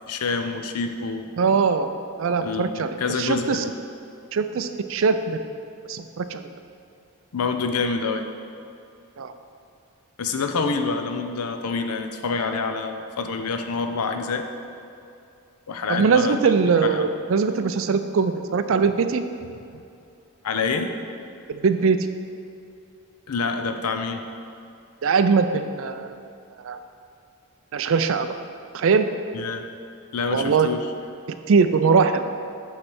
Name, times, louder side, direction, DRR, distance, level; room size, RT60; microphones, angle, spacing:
voice 1, 0.1-1.3 2.4-3.7 7.3-8.3 10.2-14.5 15.7-16.5 16.8-17.1 19.7-19.8 20.4-20.9 23.3-24.2 29.3-29.7 30.1-30.9, left 4 dB, 85° left, 6 dB, 0.6 m, -27 dB
voice 2, 1.4-1.9 2.2-2.9 3.2-3.6 4.3-5.4 5.9-6.4 9.2-9.3 15.9-19.2 21.5-22.0 25.0-26.2 26.6-26.8 27.7-28.3 28.7-29.1 30.3-30.7 31.5-32.2, right 5 dB, 60° right, 9 dB, 0.4 m, -21 dB
8.7 x 3.2 x 6.2 m, 2.6 s
head